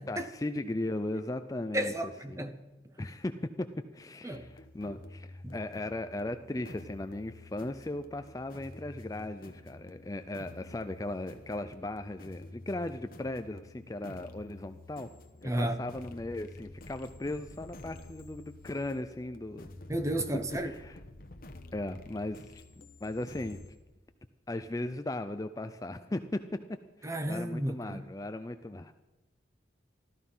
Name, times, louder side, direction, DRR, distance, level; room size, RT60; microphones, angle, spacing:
voice 1, 0.1-1.9 2.3-2.4 3.0-3.7 3.9-15.1 15.4-19.7 20.6-21.0 21.7-22.6 23.0-23.6 24.5-26.4 27.0-28.9, left 2 dB, 20° left, 0.4 m, -37 dB
voice 2, 1.7-2.6 4.2-4.5 5.4-5.5 15.4-15.8 19.9-20.7 27.0-28.1, right 1 dB, 15° right, 0.9 m, -33 dB
sound 1, 4.3-23.7, left 2 dB, 50° left, 1.1 m, -50 dB
13.5 x 13.5 x 5.5 m
head